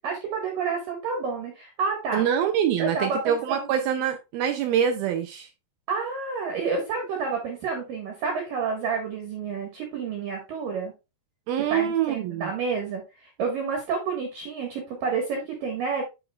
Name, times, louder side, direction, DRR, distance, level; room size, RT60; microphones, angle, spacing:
voice 1, 0.0-2.2 2.8-3.7 5.9-10.9 11.7-16.0, right 5 dB, 65° right, 3 dB, 2.5 m, -29 dB
voice 2, 2.1-5.5 11.5-12.5, right 9 dB, 80° right, 6 dB, 2.2 m, -25 dB
11.0 x 5.0 x 2.2 m, 0.26 s
omnidirectional pair, 5.0 m